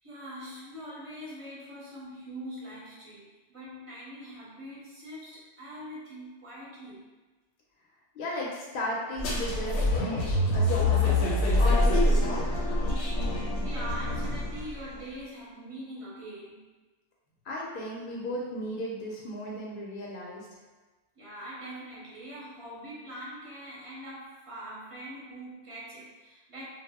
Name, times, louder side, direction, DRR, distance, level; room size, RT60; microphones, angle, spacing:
voice 1, 0.0-7.0 13.0-16.6 21.1-26.7, equal, 35° right, -7 dB, 0.6 m, -43 dB
voice 2, 8.1-11.2 11.6-12.7 17.4-20.5, left 1 dB, 60° left, -4 dB, 0.6 m, -35 dB
sound 1, 9.2-14.8, left 1 dB, 80° left, 0.9 m, -25 dB
2.1 x 2.0 x 3.4 m, 1.2 s
omnidirectional pair, 1.2 m